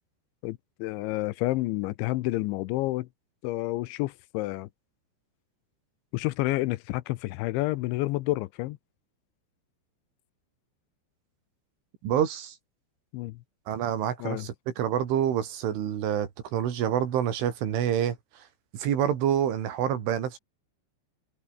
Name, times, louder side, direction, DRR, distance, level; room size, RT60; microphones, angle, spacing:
voice 1, 0.4-3.1 3.4-4.7 6.1-8.8 13.1-13.4 14.2-14.5, left 18 dB, 80° left, 3.1 m, -29 dB
voice 2, 12.0-12.6 13.7-18.4 18.7-20.4, right 9 dB, 90° right, 5.5 m, -27 dB
omnidirectional pair, 5.4 m